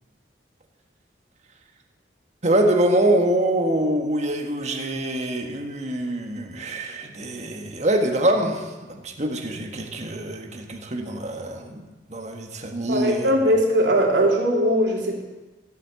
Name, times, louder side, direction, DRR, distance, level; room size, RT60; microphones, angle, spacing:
voice 1, 2.4-13.3, right 1 dB, 40° right, 3 dB, 1.7 m, -24 dB
voice 2, 12.9-15.2, equal, 85° right, -1 dB, 3.3 m, -20 dB
15.5 x 8.4 x 8.3 m, 1.2 s
head